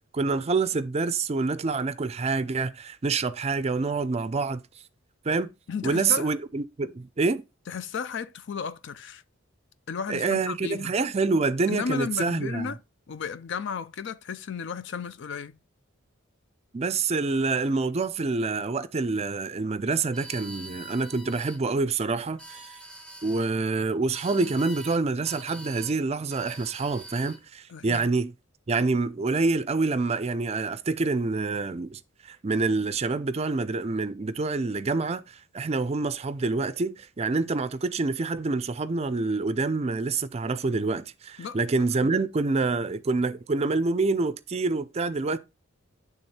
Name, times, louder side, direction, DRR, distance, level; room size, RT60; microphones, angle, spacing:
voice 1, 0.1-4.6 5.2-5.5 5.8-7.4 10.1-12.7 16.7-22.8 23.2-28.3 28.7-45.4, right 3 dB, 30° right, 0.4 m, -27 dB
voice 2, 5.7-6.3 7.7-9.2 9.9-10.9 11.7-12.8 13.1-15.5 27.7-28.1 41.4-41.6 42.0-42.1, left 6 dB, 65° left, 0.5 m, -34 dB
sound 1, 20.1-21.6 22.2-23.5 24.1-25.0 25.3-26.0 26.3-27.4, right 1 dB, 5° left, 0.9 m, -44 dB
8.8 x 3.5 x 4.3 m
head